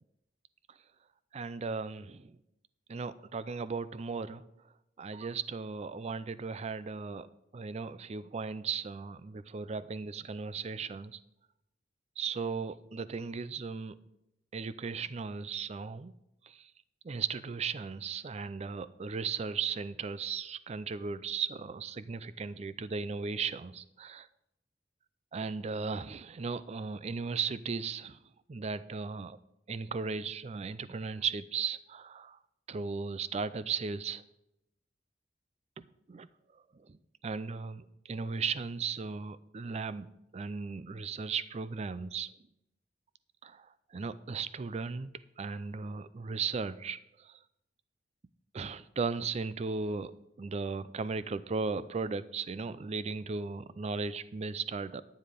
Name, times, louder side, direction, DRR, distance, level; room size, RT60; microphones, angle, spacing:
voice 1, 1.3-2.4 2.9-4.4 5.0-7.3 7.5-11.2 12.2-13.9 14.5-16.1 16.5-16.7 17.0-24.3 25.3-28.2 28.5-29.4 29.7-32.4 32.7-34.2 36.1-36.3 36.9-37.0 37.2-40.1 40.3-42.3 43.4-43.7 43.9-45.1 45.4-47.4 48.5-50.1 50.4-55.0, right 5 dB, 35° right, 16 dB, 0.4 m, -36 dB
10.0 x 9.4 x 5.1 m, 0.85 s
head